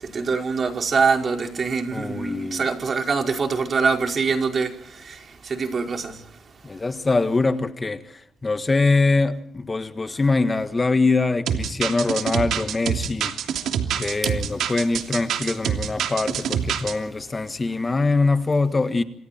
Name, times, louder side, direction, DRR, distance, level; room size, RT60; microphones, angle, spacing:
voice 1, 0.0-6.4 14.2-14.3, right 5 dB, 45° right, 5.0 m, -24 dB
voice 2, 1.9-2.6 6.6-13.4 13.9-19.0, left 3 dB, 25° left, 1.6 m, -23 dB
sound 1, 11.5-16.9, right 8 dB, 75° right, 3.0 m, -26 dB
28.0 x 27.0 x 4.4 m
cardioid pair, 90°, 0 cm